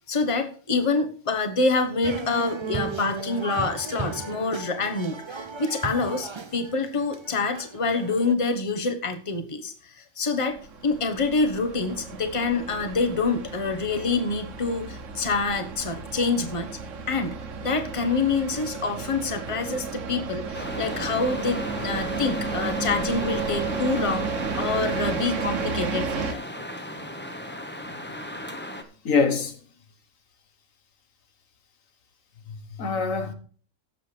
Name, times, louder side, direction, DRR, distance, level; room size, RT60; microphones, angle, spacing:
voice 1, 0.1-16.8 17.1-26.4, left 3 dB, 25° left, 1.1 m, -26 dB
sound 1, 2.0-8.3, right 4 dB, 35° right, 0.5 m, -35 dB
sound 2, 10.5-26.3, right 5 dB, 70° right, 1.2 m, -33 dB
sound 3, 20.5-28.8, left 1 dB, 10° left, 0.9 m, -35 dB
voice 2, 29.1-29.5 32.5-33.3, left 4 dB, 90° left, 1.7 m, -24 dB
16.5 x 7.4 x 3.3 m
omnidirectional pair, 1.3 m